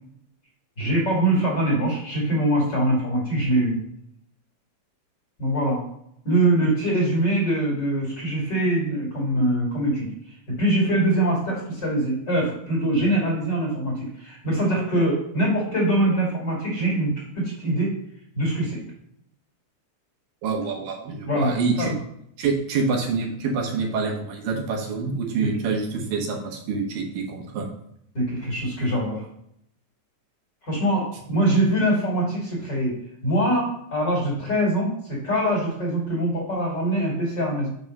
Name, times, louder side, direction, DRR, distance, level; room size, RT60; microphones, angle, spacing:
voice 1, 0.8-3.8 5.4-5.8 6.2-10.1 10.5-17.9 18.3-18.8 21.2-21.5 21.8-21.9 25.4-25.5 28.1-29.2 30.6-33.0 33.2-37.7, right 1 dB, 35° left, -4 dB, 2.3 m, -23 dB
voice 2, 20.4-21.9 22.4-27.7, right 4 dB, 75° right, 2 dB, 2.8 m, -26 dB
6.1 x 5.5 x 5.3 m, 0.73 s
omnidirectional pair, 4.1 m